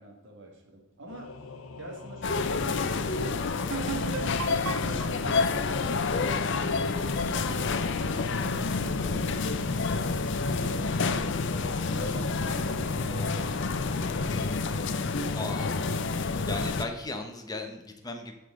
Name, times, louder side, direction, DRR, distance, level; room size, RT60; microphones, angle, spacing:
voice 1, 0.0-1.3 1.8-3.3 4.9-7.8 8.4-9.5 10.0-14.3, right 1 dB, 60° right, 1 dB, 2.1 m, -47 dB
Singing / Musical instrument, 1.1-16.1, left 4 dB, 80° left, 0.9 m, -44 dB
sound 1, 2.2-16.8, left 4 dB, 55° left, 0.6 m, -29 dB
sound 2, 3.7-7.3, right 8 dB, 80° right, 0.4 m, -38 dB
voice 2, 15.3-15.8 16.4-18.3, left 2 dB, 15° left, 4 dB, 1.1 m, -36 dB
12.5 x 5.3 x 3.9 m, 1.0 s
head